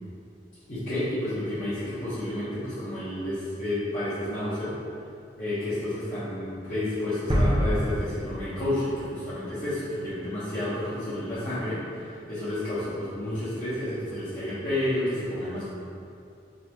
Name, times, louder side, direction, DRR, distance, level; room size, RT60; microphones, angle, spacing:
voice 1, 0.7-4.7 5.4-11.8 12.3-15.7, left 1 dB, 50° left, -15 dB, 1.2 m, -30 dB
sound 1, 7.3-9.2, equal, 25° right, 0.6 m, -26 dB
3.9 x 3.5 x 3.0 m, 2.5 s
head